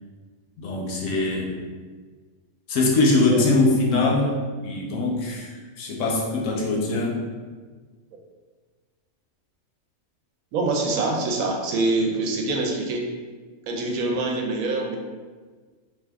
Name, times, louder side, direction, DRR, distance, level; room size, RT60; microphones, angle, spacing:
voice 1, 0.6-1.5 2.7-7.2, left 2 dB, 70° left, -1 dB, 0.9 m, -22 dB
voice 2, 10.5-13.1 13.7-15.0, right 2 dB, 80° right, 1 dB, 1.0 m, -25 dB
2.7 x 2.4 x 3.4 m, 1.4 s
omnidirectional pair, 1.5 m